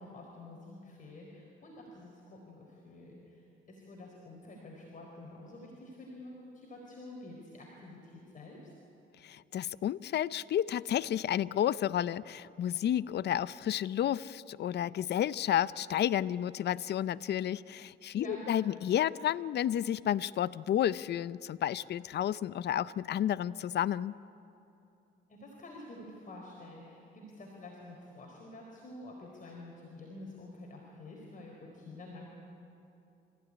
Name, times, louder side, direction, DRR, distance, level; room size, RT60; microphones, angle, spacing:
voice 1, 0.0-8.7 18.1-18.5 25.3-32.3, left 2 dB, 40° left, -1 dB, 4.3 m, -48 dB
voice 2, 9.2-24.1, left 11 dB, 60° left, 17 dB, 0.6 m, -31 dB
26.0 x 15.5 x 9.8 m, 2.8 s
cardioid pair, 90°, 20 cm